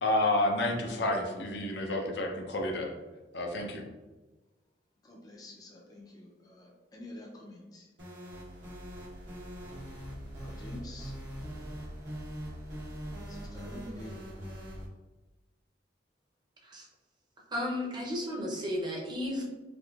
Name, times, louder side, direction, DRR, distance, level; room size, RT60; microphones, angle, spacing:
voice 1, 0.0-2.9 3.3-3.8, left 1 dB, 70° left, 2 dB, 0.5 m, -29 dB
voice 2, 5.0-7.9 10.4-11.1 13.3-14.2, left 1 dB, 20° left, -2 dB, 0.4 m, -48 dB
sound 1, 8.0-14.9, equal, 80° right, 1.1 m, -42 dB
voice 3, 17.5-19.4, left 1 dB, 25° right, -2 dB, 0.6 m, -33 dB
3.4 x 2.6 x 2.3 m, 1.2 s
head